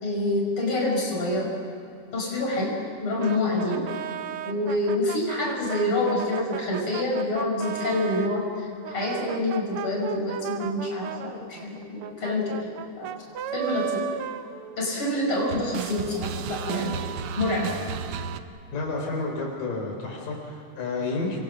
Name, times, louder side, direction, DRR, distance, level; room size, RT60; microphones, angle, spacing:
voice 1, 0.0-1.5 2.1-2.7 3.0-3.9 4.4-12.7 13.0-13.1 13.5-14.0 14.8-17.1 17.4-17.7, left 1 dB, 40° left, -2 dB, 6.3 m, -27 dB
sound 1, 3.2-8.3 8.8-15.1 15.4-18.4, right 9 dB, 85° right, 1.2 m, -34 dB
voice 2, 18.7-21.4, left 3 dB, 90° left, 0 dB, 5.6 m, -30 dB
29.0 x 22.5 x 6.2 m, 2.6 s
omnidirectional pair, 3.7 m